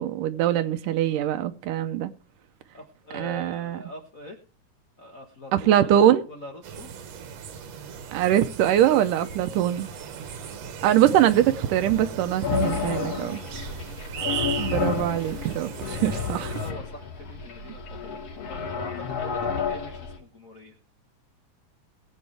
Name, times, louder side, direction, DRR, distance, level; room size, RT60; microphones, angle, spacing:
voice 1, 0.0-2.1 3.1-3.8 5.5-6.2 8.1-9.9 10.8-13.4 14.6-15.7 16.0-16.5, right 11 dB, 80° right, 2.2 m, -22 dB
voice 2, 2.7-4.4 5.0-6.9 12.8-13.8 15.8-20.8, left 1 dB, 75° left, 0.7 m, -43 dB
sound 1, 6.6-16.7, right 7 dB, 60° right, 2.0 m, -37 dB
sound 2, 12.4-20.2, left 6 dB, 50° left, 2.9 m, -31 dB
20.5 x 8.2 x 3.3 m
omnidirectional pair, 3.7 m